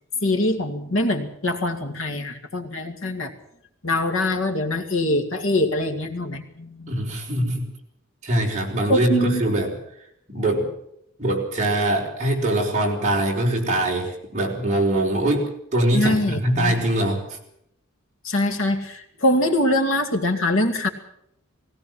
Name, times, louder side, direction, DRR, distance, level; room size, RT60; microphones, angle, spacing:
voice 1, 0.2-3.3 3.8-7.0 8.9-9.4 15.9-16.9 18.2-20.9, left 1 dB, 60° left, 5 dB, 2.1 m, -23 dB
voice 2, 6.9-7.7 8.2-9.8 10.3-10.7 11.2-17.4, right 1 dB, 30° right, -1 dB, 4.5 m, -23 dB
19.5 x 18.0 x 7.6 m, 0.76 s
head